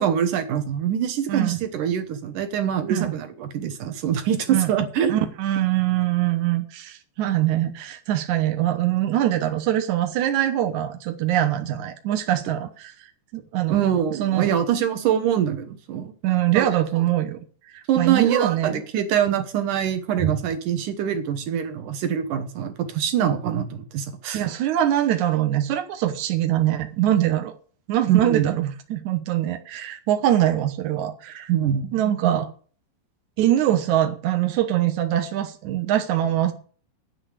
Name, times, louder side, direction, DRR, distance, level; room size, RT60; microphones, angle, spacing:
voice 1, 0.0-5.2 13.7-16.1 16.5-16.7 17.9-24.4 28.1-28.5 31.5-32.5, right 9 dB, 70° right, 9 dB, 1.9 m, -24 dB
voice 2, 1.3-1.6 2.9-3.1 4.5-4.7 5.1-12.9 13.3-13.8 14.2-14.5 16.2-17.4 17.7-18.8 20.2-20.3 24.3-27.5 27.9-31.5 31.9-32.5 33.4-36.5, right 12 dB, 85° right, 7 dB, 1.6 m, -23 dB
9.8 x 9.1 x 8.2 m, 0.43 s
omnidirectional pair, 5.3 m